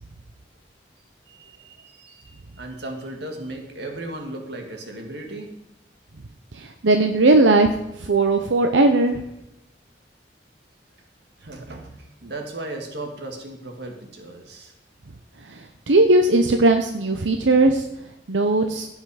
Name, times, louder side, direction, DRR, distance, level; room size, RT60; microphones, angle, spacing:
voice 1, 1.3-5.5 11.4-14.7, right 2 dB, 65° right, 3 dB, 1.9 m, -36 dB
voice 2, 6.5-7.7 8.0-9.2 15.4-17.9 18.3-18.9, right 2 dB, 90° right, 5 dB, 0.8 m, -18 dB
16.5 x 5.8 x 5.0 m, 0.86 s
head